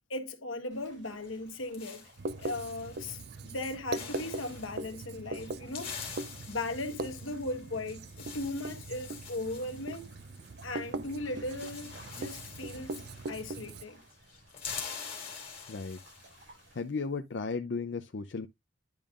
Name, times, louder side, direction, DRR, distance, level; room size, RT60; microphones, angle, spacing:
voice 1, 0.1-2.1 2.4-6.0 6.5-10.1 10.6-14.0, left 2 dB, 90° left, 1.4 m, -38 dB
sound 1, 0.7-16.8, right 1 dB, 70° right, 4.7 m, -59 dB
sound 2, 1.2-3.2 3.5-3.7 3.9-4.8 5.4-10.9 11.1-11.2 11.4-13.8 14.1-16.5, left 6 dB, 30° left, 2.9 m, -46 dB
Writing, 2.2-13.8, right 3 dB, 55° right, 0.4 m, -41 dB
voice 2, 15.7-16.0 16.7-18.5, left 4 dB, 65° left, 0.6 m, -35 dB
10.5 x 5.3 x 2.5 m
head